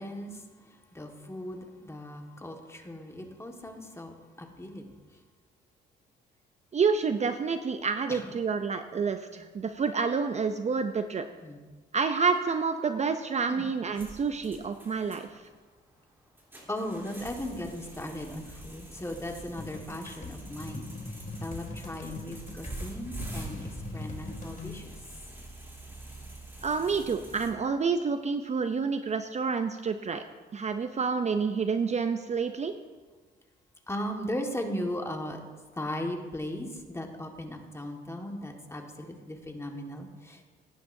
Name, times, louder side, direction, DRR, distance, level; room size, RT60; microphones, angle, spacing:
voice 1, 0.0-4.9 8.1-8.3 8.9-9.0 9.3-9.5 11.4-11.6 13.5-13.7 16.7-20.8 21.4-25.0 33.9-35.4 35.7-40.5, left 1 dB, 15° left, 2 dB, 1.6 m, -37 dB
voice 2, 6.7-11.3 11.9-15.4 26.6-30.2 30.5-32.7, right 5 dB, 35° right, 8 dB, 0.5 m, -28 dB
sound 1, 13.9-27.5, right 2 dB, 10° right, 3.2 m, -45 dB
sound 2, 19.6-24.7, left 3 dB, 40° left, 2.1 m, -41 dB
17.5 x 9.7 x 2.7 m, 1.4 s
cardioid pair, 90°, 20 cm